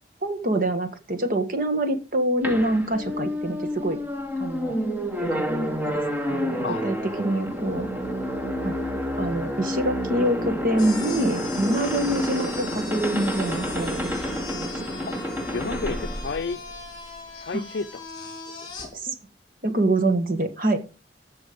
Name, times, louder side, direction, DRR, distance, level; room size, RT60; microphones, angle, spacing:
voice 1, 0.2-4.0 4.4-4.8 5.2-5.4 5.8-6.0 6.3-7.9 8.6-8.8 9.2-14.1 14.6-14.7 18.9-19.1 19.6-20.8, right 1 dB, 50° right, 1.5 m, -25 dB
sound 1, 2.4-17.2, equal, 10° right, 1.2 m, -29 dB
sound 2, 10.8-18.9, left 4 dB, 25° left, 4.0 m, -39 dB
voice 2, 15.5-16.6 17.3-18.1 18.5-18.7, left 4 dB, 70° left, 0.5 m, -31 dB
14.5 x 5.6 x 5.1 m
head